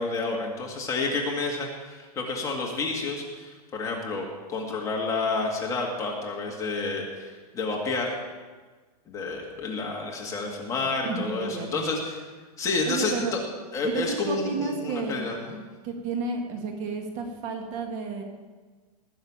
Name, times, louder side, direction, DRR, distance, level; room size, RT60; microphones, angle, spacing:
voice 1, 0.0-8.1 9.1-12.2 12.6-13.4 13.7-15.6, left 3 dB, 15° left, -1 dB, 2.0 m, -30 dB
voice 2, 11.0-12.0 12.9-13.4 13.8-15.2 15.8-18.2, right 4 dB, 35° right, 3 dB, 2.3 m, -31 dB
19.5 x 6.6 x 8.8 m, 1.4 s
hypercardioid pair, 160°, 20 cm